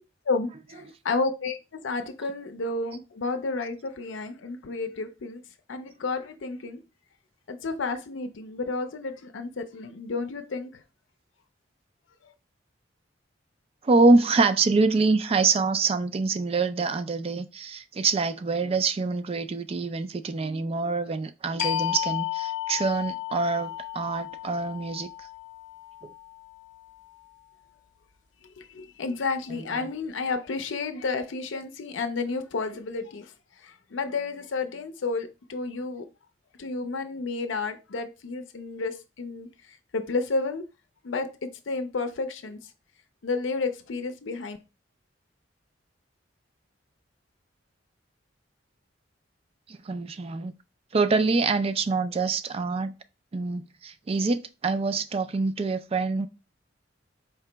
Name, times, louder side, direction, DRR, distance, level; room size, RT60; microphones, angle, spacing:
voice 1, 0.3-5.4 5.7-6.8 7.5-10.7 28.6-33.3 33.6-36.1 36.6-39.5 39.9-40.6 41.0-42.6 43.2-44.6, left 3 dB, 90° left, 0.5 m, -31 dB
voice 2, 13.8-25.1 29.8-29.9 49.7-50.5 50.9-52.9 53.3-56.3, right 3 dB, 30° right, 0.4 m, -25 dB
sound 1, 21.6-26.9, left 15 dB, 45° left, 0.6 m, -33 dB
4.5 x 2.9 x 3.3 m
head